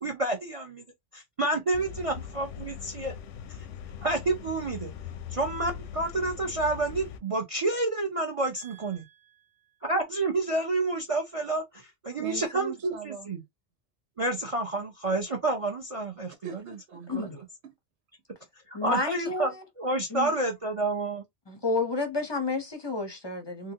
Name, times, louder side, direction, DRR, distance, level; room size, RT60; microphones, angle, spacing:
voice 1, 0.0-0.8 1.1-3.1 3.5-3.6 4.0-4.9 5.3-9.0 9.8-13.4 14.2-16.3 17.1-17.3 18.7-21.2, right 2 dB, 40° right, 0.5 m, -29 dB
sound 1, 1.7-7.2, left 8 dB, 90° left, 0.9 m, -41 dB
voice 2, 8.6-9.8 12.2-13.3 16.4-17.2 17.6-17.7, right 7 dB, 70° right, 1.1 m, -43 dB
voice 3, 17.1-17.4 18.7-19.6 20.1-20.3 21.5-23.7, left 3 dB, 30° left, 0.5 m, -30 dB
3.8 x 2.2 x 2.7 m
omnidirectional pair, 1.2 m